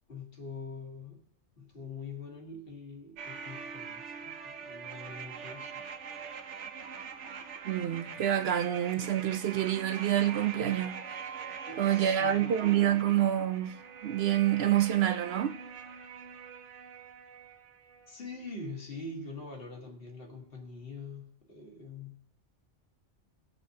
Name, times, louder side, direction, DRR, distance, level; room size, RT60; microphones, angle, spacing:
voice 1, 0.1-1.3 1.6-5.9 11.7-12.7 18.1-22.2, left 3 dB, 55° left, 1.6 m, -44 dB
sound 1, 3.2-18.2 18.5-18.6, right 6 dB, 85° right, 1.1 m, -43 dB
voice 2, 7.6-11.0 11.8-13.8 14.0-15.5, right 11 dB, 65° right, 0.8 m, -27 dB
18.5 x 6.9 x 2.8 m
omnidirectional pair, 1.2 m